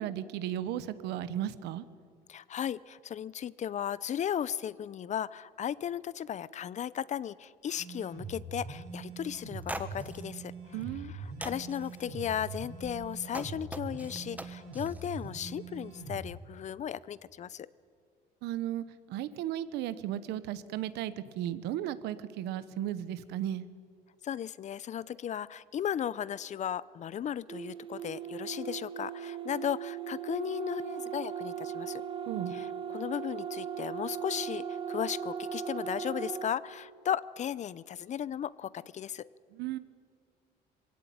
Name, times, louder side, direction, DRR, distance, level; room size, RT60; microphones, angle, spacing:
voice 1, 0.0-1.8 10.7-11.1 18.4-23.6 32.3-32.5 39.6-39.8, right 11 dB, 85° right, 14 dB, 1.0 m, -35 dB
voice 2, 2.3-17.7 24.2-32.0 32.5-39.3, left 9 dB, 45° left, 20 dB, 0.6 m, -36 dB
sound 1, 7.8-16.3, right 4 dB, 60° right, 5.4 m, -43 dB
sound 2, 9.3-9.4 9.6-10.2 10.8-11.1 11.4-12.0 12.8-15.2, right 2 dB, 10° right, 1.3 m, -42 dB
sound 3, 27.5-36.6, right 8 dB, 30° right, 1.3 m, -38 dB
21.5 x 16.5 x 9.3 m, 2.1 s
cardioid pair, 110°, 17 cm